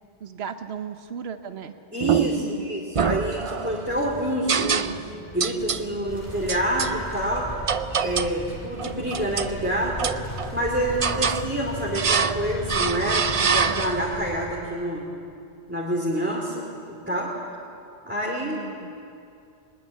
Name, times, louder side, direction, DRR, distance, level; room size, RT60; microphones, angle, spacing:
voice 1, 0.2-1.7 2.4-2.8 11.1-11.5 18.4-18.9, right 7 dB, 65° right, 8 dB, 1.2 m, -36 dB
voice 2, 1.9-5.0 5.3-7.5 8.0-10.1 10.5-13.3 13.5-15.0 15.7-17.3 18.0-18.6, right 1 dB, 10° right, -4 dB, 2.6 m, -27 dB
sound 1, 2.0-2.5 2.9-3.8 4.5-5.1 5.4-5.9 6.5-6.9 7.7-8.4 8.8-9.5 10.0-10.6 11.0-11.5 11.9-12.4 12.7-14.2, right 6 dB, 40° right, 0.5 m, -25 dB
sound 2, 2.9-13.0, right 1 dB, 40° left, 5.2 m, -43 dB
sound 3, 6.1-14.6, left 1 dB, 15° left, 3.0 m, -37 dB
21.5 x 20.5 x 8.4 m, 2.5 s
omnidirectional pair, 1.2 m